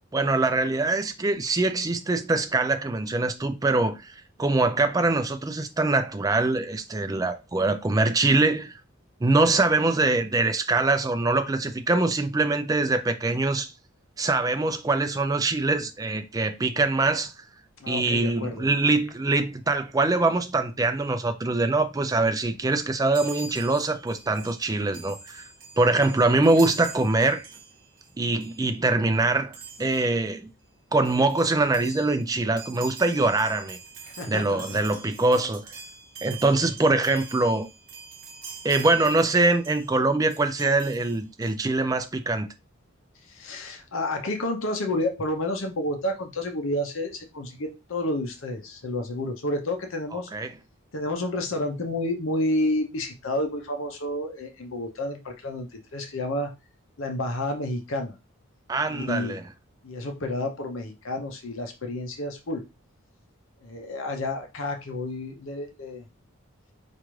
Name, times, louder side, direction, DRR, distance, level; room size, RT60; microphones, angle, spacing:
voice 1, 0.1-8.8 9.2-13.7 14.2-17.3 17.9-25.5 25.8-27.5 28.2-30.5 30.9-33.8 34.3-35.7 36.2-37.7 38.6-42.5 50.3-50.5 58.7-59.4, right 2 dB, 15° right, 0.3 m, -23 dB
voice 2, 17.8-18.7 34.1-34.6 43.3-50.3 50.9-56.5 57.0-58.2 58.9-59.4 59.8-62.6 63.6-66.0, left 1 dB, 65° left, 0.7 m, -30 dB
Chime, 23.1-28.1 28.4-28.6 29.5-30.1 30.7-30.8 31.0-40.0 40.3-41.5, right 4 dB, 40° right, 0.9 m, -44 dB
4.6 x 2.5 x 3.1 m
head